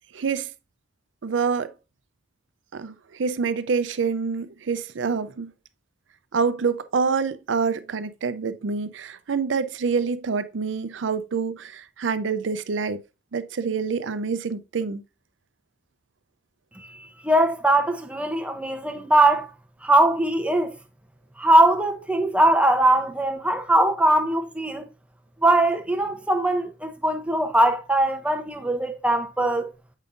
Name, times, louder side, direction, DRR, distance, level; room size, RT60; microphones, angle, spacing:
voice 1, 0.1-0.5 1.2-1.7 2.7-5.5 6.3-13.0 13.3-15.0, right 5 dB, 90° right, 0.5 m, -26 dB
voice 2, 16.8-19.5 19.8-20.7 21.4-24.9 25.4-29.7, right 1 dB, 5° right, 0.7 m, -21 dB
7.3 x 5.2 x 2.5 m
head